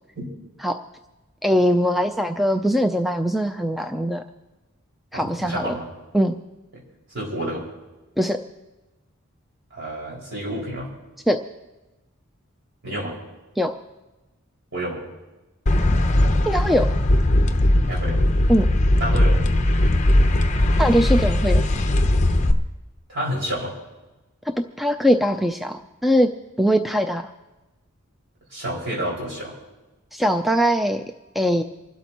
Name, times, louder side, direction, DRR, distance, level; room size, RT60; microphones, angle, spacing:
voice 1, 1.4-4.2 5.1-5.7 6.1-6.3 8.2-8.4 11.3-11.4 13.6-13.7 16.5-16.9 18.5-18.7 20.8-21.6 24.8-26.3 26.6-27.3 30.1-31.0 31.4-31.6, equal, ahead, 5 dB, 0.4 m, -21 dB
voice 2, 5.1-5.9 6.7-6.8 7.1-7.6 9.7-10.9 12.8-13.1 14.7-15.0 17.8-18.2 19.0-19.4 23.1-23.7 28.5-29.5, right 1 dB, 55° right, -4 dB, 5.4 m, -29 dB
sound 1, 15.7-22.5, left 1 dB, 35° left, 0.8 m, -19 dB
28.0 x 12.5 x 3.0 m, 1.1 s
head